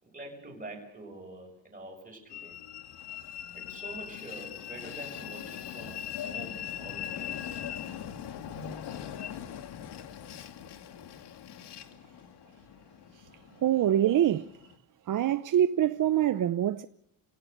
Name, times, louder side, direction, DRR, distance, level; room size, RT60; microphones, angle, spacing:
voice 1, 0.0-2.6 3.5-7.4 14.0-14.2, right 2 dB, 20° right, 6.7 m, -45 dB
Train, 2.3-14.8, left 9 dB, 60° left, 2.3 m, -41 dB
voice 2, 13.6-14.4 15.1-16.8, right 11 dB, 45° right, 0.7 m, -24 dB
29.5 x 17.0 x 6.6 m
cardioid pair, 110°, 46 cm